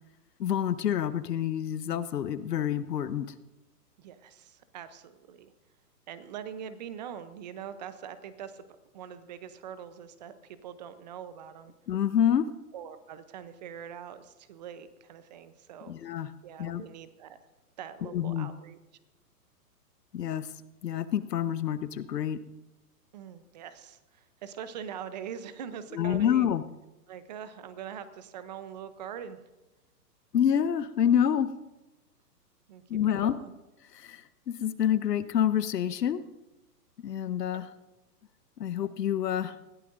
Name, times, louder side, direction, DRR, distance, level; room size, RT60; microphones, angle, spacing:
voice 1, 0.4-3.3 11.9-12.5 15.9-16.3 16.6-16.8 18.1-18.5 20.1-20.5 20.8-22.4 25.9-26.6 30.3-31.5 32.9-33.4 33.9-34.2 34.5-36.2 37.0-37.7 38.6-39.5, left 9 dB, 75° left, 14 dB, 1.0 m, -27 dB
voice 2, 4.0-5.5 6.1-8.6 8.9-11.7 12.7-15.9 16.4-17.4 17.8-18.8 23.1-26.5 27.1-29.4 32.7-32.8 33.2-33.5, right 8 dB, 25° right, 13 dB, 0.6 m, -43 dB
20.0 x 15.0 x 2.6 m, 1.0 s
hypercardioid pair, 145°, 49 cm